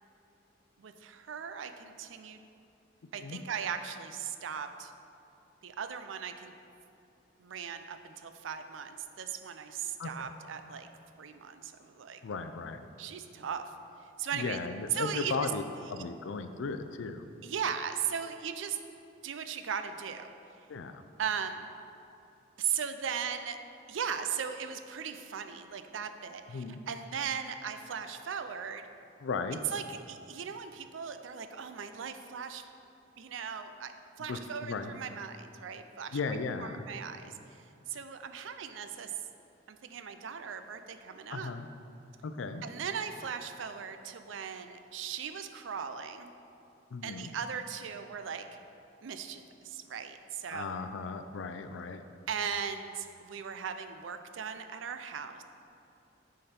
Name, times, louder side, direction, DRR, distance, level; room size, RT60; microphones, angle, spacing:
voice 1, 0.8-2.4 3.1-4.9 5.6-6.5 7.4-10.9 11.2-12.2 13.0-13.6 14.2-14.6 14.9-15.4 17.4-18.8 19.2-20.3 21.2-21.7 22.6-23.6 23.9-28.9 29.7-32.6 33.2-33.9 34.2-36.2 36.6-37.6 37.9-39.1 39.7-41.5 42.6-46.3 47.0-48.5 49.0-50.8 52.3-55.4, right 7 dB, 90° right, 8 dB, 0.4 m, -38 dB
voice 2, 10.0-10.3 12.2-12.9 14.3-15.6 15.9-17.3 20.7-21.0 26.5-26.8 29.2-29.6 34.3-35.0 36.1-36.8 41.3-41.7 42.2-42.6 46.9-47.3 50.5-52.0, left 4 dB, 90° left, 9 dB, 0.4 m, -36 dB
9.8 x 3.9 x 4.3 m, 2.7 s
head